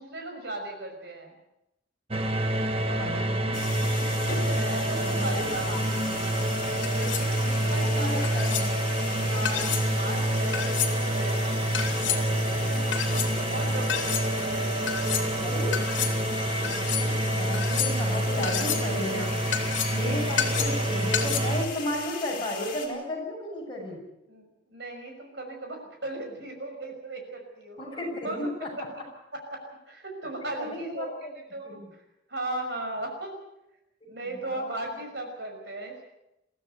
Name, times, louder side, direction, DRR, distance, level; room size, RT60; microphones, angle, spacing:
voice 1, 0.0-1.4 2.9-3.6 4.0-4.1 4.5-5.7 6.9-8.5 9.1-11.4 12.0-12.3 12.6-14.7 20.4-20.7 24.3-28.5 29.3-31.1 31.5-32.0 32.3-33.4 34.0-36.1, right 2 dB, 60° right, 3 dB, 5.9 m, -37 dB
sound 1, 2.1-21.6, right 1 dB, 30° right, 1.4 m, -27 dB
voice 2, 3.0-3.6 5.0-6.5 7.4-8.8 15.4-15.8 16.7-19.4 19.9-24.0 27.8-28.7 30.4-31.3 31.6-31.9 34.0-35.0, left 1 dB, 25° left, -1 dB, 6.9 m, -35 dB
sound 2, 3.5-22.9, left 6 dB, 50° left, 4.7 m, -39 dB
sound 3, 6.8-7.3 8.2-8.7 9.5-9.9 10.5-10.9 11.7-12.2 12.9-13.3 13.9-14.3 14.9-15.3 15.7-16.2 16.6-17.1 17.5-18.1 18.4-18.9 19.5-20.0 20.4-20.8 21.1-21.4, left 9 dB, 75° left, 3.3 m, -30 dB
22.0 x 15.5 x 8.1 m, 0.89 s
head